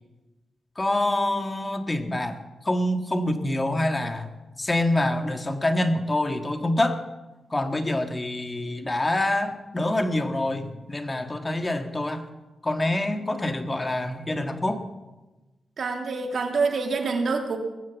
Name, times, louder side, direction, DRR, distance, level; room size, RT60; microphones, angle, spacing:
voice 1, 0.8-2.4 2.7-4.3 4.6-7.0 7.5-12.2 12.6-14.8, left 1 dB, 25° left, 6 dB, 1.8 m, -26 dB
voice 2, 15.8-17.6, right 4 dB, 65° right, 3 dB, 2.3 m, -26 dB
20.5 x 7.5 x 7.2 m, 1.1 s
cardioid pair, 50°, 0 cm